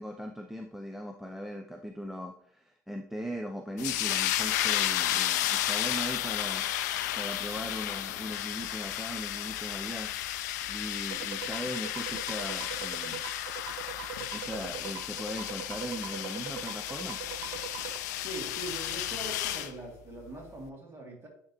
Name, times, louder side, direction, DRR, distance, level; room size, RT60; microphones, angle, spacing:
voice 1, 0.0-10.1 10.7-13.2 14.3-17.2, equal, 5° right, 4 dB, 0.5 m, -39 dB
sound 1, 3.8-19.7, left 12 dB, 70° left, 0.4 m, -33 dB
sound 2, 11.1-18.0, right 13 dB, 60° right, 0.4 m, -42 dB
voice 2, 18.2-21.3, right 1 dB, 25° right, -1 dB, 2.6 m, -42 dB
10.0 x 3.6 x 3.0 m, 0.62 s
hypercardioid pair, 70°, 9 cm